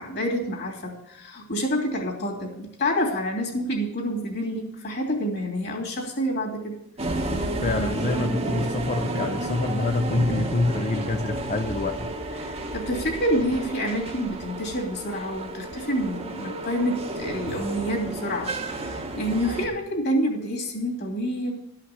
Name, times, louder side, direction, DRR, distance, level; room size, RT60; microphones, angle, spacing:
voice 1, 0.0-6.8 12.4-21.5, equal, 50° left, 0 dB, 2.7 m, -28 dB
sound 1, 7.0-19.7, right 2 dB, 30° right, 1.1 m, -31 dB
voice 2, 7.6-12.1, left 2 dB, 35° left, 7 dB, 0.5 m, -26 dB
13.0 x 5.8 x 7.9 m, 0.80 s
head